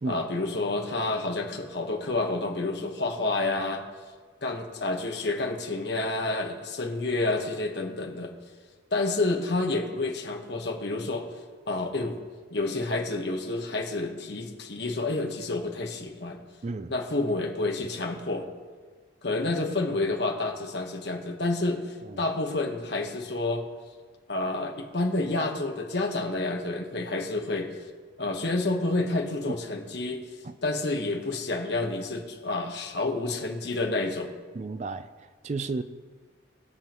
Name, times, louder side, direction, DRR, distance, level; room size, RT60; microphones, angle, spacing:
voice 1, 0.1-3.8 4.4-8.3 8.9-11.2 11.7-12.2 12.5-16.4 16.9-18.5 19.2-23.6 24.3-27.7 28.2-30.2 30.6-34.3, left 2 dB, 60° left, 1.3 m, -29 dB
voice 2, 16.6-16.9 22.0-22.2 29.5-29.6 30.4-30.6 34.5-35.8, right 3 dB, 40° right, 0.4 m, -33 dB
21.0 x 7.2 x 3.0 m
head